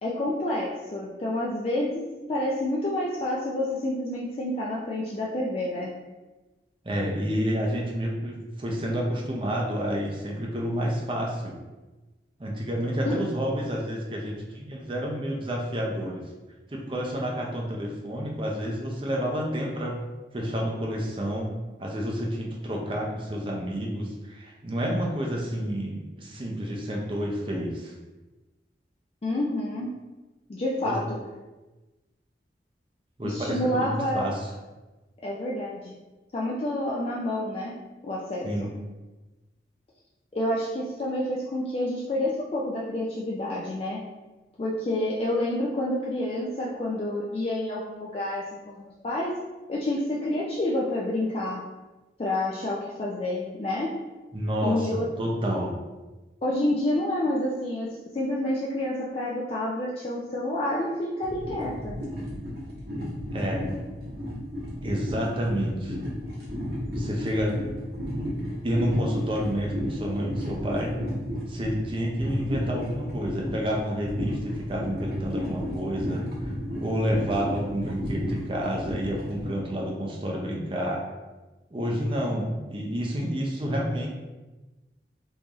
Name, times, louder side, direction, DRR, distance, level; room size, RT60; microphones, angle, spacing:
voice 1, 0.0-5.9 13.1-13.2 29.2-29.9 30.5-31.0 33.2-34.3 35.2-35.9 36.3-37.7 38.0-38.7 40.3-44.0 44.6-49.3 49.7-51.6 52.2-53.9 54.6-55.1 56.4-57.9 58.1-62.0, left 1 dB, 35° left, -4 dB, 0.3 m, -28 dB
voice 2, 6.8-11.5 12.4-16.2 16.7-20.0 20.3-21.5 21.8-27.9 30.8-31.0 33.2-34.5 38.4-38.7 54.3-55.7 63.3-63.6 64.8-66.0 66.9-67.6 68.4-70.9 71.5-76.5 76.8-81.0 81.7-84.1, equal, 30° right, -1 dB, 0.5 m, -29 dB
sound 1, 61.2-79.5, equal, 65° right, 1.1 m, -33 dB
3.7 x 2.6 x 3.0 m, 1.2 s
head